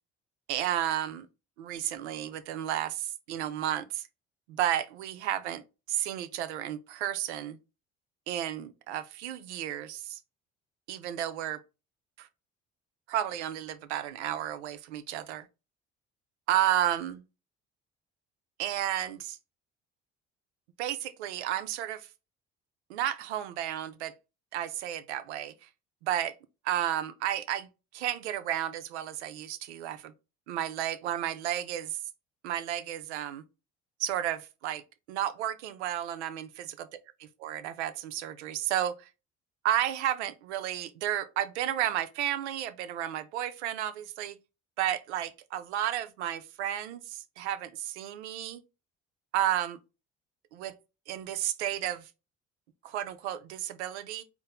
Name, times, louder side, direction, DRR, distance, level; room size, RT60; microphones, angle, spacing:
voice 1, 0.5-1.3 1.6-4.1 4.5-5.6 5.9-7.6 8.3-10.2 10.9-11.6 12.2-12.3 13.1-15.5 16.5-17.2 18.6-19.4 20.8-22.1 22.9-24.1 24.5-25.7 26.0-26.3 26.6-30.1 30.5-32.0 32.4-33.4 34.0-34.8 35.1-36.9 37.2-39.1 39.6-44.4 44.8-48.6 49.3-49.8 50.5-50.7 51.1-52.1 52.8-54.2, right 11 dB, 85° right, 0.5 m, -32 dB
4.1 x 2.0 x 3.8 m
hypercardioid pair, 55°, 34 cm